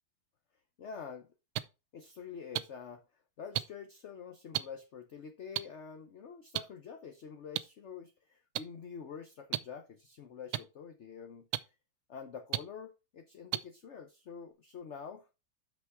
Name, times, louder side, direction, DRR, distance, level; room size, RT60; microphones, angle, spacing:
voice 1, 0.8-1.3 1.9-3.0 3.4-11.5 12.1-15.3, left 6 dB, 55° left, 7 dB, 0.8 m, -47 dB
sound 1, 1.5-1.6 2.5-2.6 3.5-3.6 4.5-4.6 5.5-5.6 6.5-6.6 7.6-7.7 8.5-8.6 9.5-9.6 10.5-10.6 11.5-11.6 12.5-12.6 13.5-13.6 14.5-14.6, right 15 dB, 90° right, 1.4 m, -31 dB
6.2 x 6.1 x 4.7 m, 0.28 s
omnidirectional pair, 2.1 m